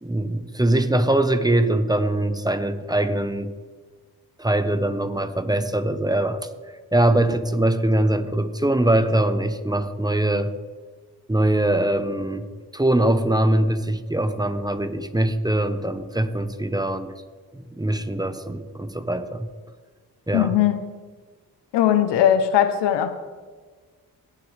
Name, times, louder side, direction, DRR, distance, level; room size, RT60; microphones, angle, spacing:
voice 1, 0.0-3.5 4.4-6.4 6.9-10.5 11.3-12.5 12.7-17.1 17.5-19.5 20.3-20.5, right 1 dB, 10° right, 10 dB, 0.9 m, -22 dB
voice 2, 20.3-20.8 21.7-23.1, left 10 dB, 90° left, 10 dB, 0.8 m, -19 dB
18.0 x 6.6 x 3.3 m, 1.5 s
cardioid pair, 60°, 40 cm